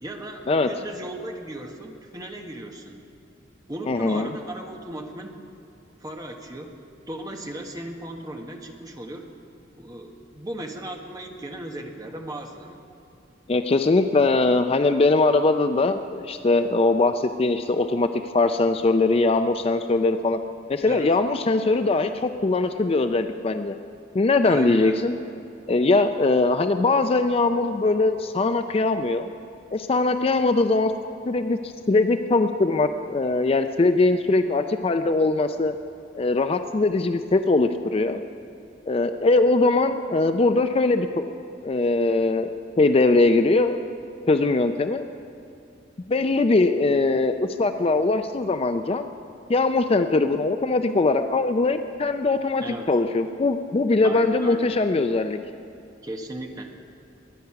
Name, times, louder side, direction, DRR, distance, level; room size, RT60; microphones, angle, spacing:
voice 1, 0.0-3.0 3.7-5.3 6.0-6.7 7.1-9.3 9.8-12.8 20.8-21.1 24.4-25.1 52.6-52.9 54.0-54.7 56.0-56.7, right 1 dB, 20° right, 3 dB, 1.2 m, -36 dB
voice 2, 3.9-4.3 13.5-18.1 18.3-20.4 20.7-23.7 24.1-25.2 25.7-29.3 29.7-30.9 31.3-35.7 36.2-38.2 38.9-41.3 41.6-42.5 42.8-43.7 44.3-45.0 46.1-49.1 49.5-55.4, left 3 dB, 30° left, 8 dB, 0.4 m, -21 dB
21.5 x 9.4 x 5.8 m, 2.6 s
head